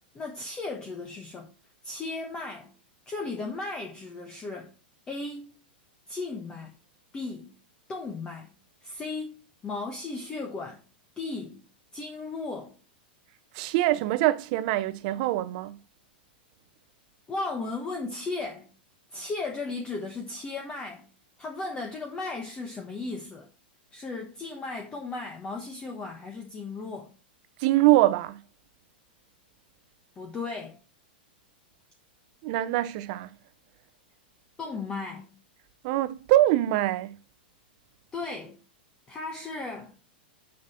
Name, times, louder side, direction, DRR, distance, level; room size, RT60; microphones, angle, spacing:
voice 1, 0.1-1.5 1.8-2.7 3.1-4.7 5.1-5.5 6.1-6.8 7.1-7.5 7.9-8.5 8.8-10.8 11.2-11.6 11.9-12.7 17.3-18.7 19.1-21.1 21.4-23.5 23.9-27.1 30.2-30.8 34.6-35.3 38.1-38.6 39.1-39.9, left 3 dB, 15° left, 1.2 m, -36 dB
voice 2, 13.5-15.8 27.6-28.4 32.4-33.3 35.8-37.2, right 15 dB, 45° right, 0.7 m, -24 dB
7.0 x 6.6 x 4.3 m
supercardioid pair, 150°, 5 cm